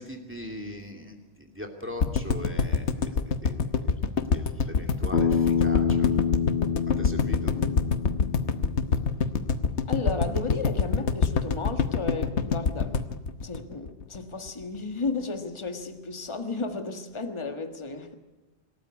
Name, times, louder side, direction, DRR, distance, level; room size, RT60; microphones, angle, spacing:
voice 1, 0.0-3.9 4.3-6.1 7.0-7.5, left 1 dB, 10° right, 3 dB, 2.5 m, -40 dB
sound 1, 2.0-14.2 14.5-14.6 14.8-14.9, left 5 dB, 85° left, 1.4 m, -25 dB
Bass guitar, 5.1-9.4, left 6 dB, 65° left, 1.4 m, -27 dB
voice 2, 9.9-13.1 13.4-18.1, left 3 dB, 25° left, 7 dB, 1.6 m, -33 dB
26.0 x 14.0 x 9.5 m, 1.1 s
omnidirectional pair, 1.1 m